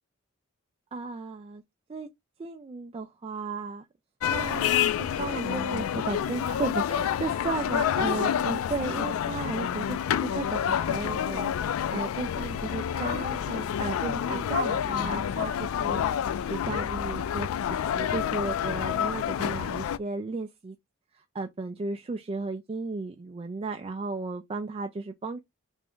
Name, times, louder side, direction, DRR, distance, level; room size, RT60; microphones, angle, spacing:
voice 1, 0.9-1.6 1.9-2.1 2.4-3.9 4.3-11.5 11.9-16.0 16.5-20.8 21.1-25.4, right 3 dB, 30° right, 0.3 m, -34 dB
sound 1, 4.2-20.0, left 9 dB, 80° left, 0.3 m, -28 dB
3.4 x 2.5 x 3.5 m
head